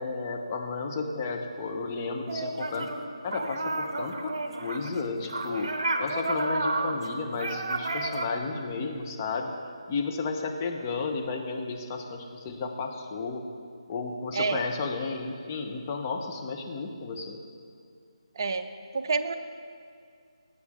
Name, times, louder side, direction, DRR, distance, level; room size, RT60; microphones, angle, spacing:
voice 1, 0.0-2.9 3.2-5.7 6.0-9.5 9.9-13.4 13.9-17.4, left 4 dB, 25° left, 2 dB, 0.9 m, -33 dB
sound 1, 2.3-3.0 3.3-8.3, right 2 dB, 55° right, 1.0 m, -31 dB
voice 2, 18.3-19.3, right 4 dB, 40° right, 6 dB, 0.6 m, -28 dB
17.0 x 7.9 x 3.6 m, 2.3 s
figure-of-eight pair, 155°, 3 cm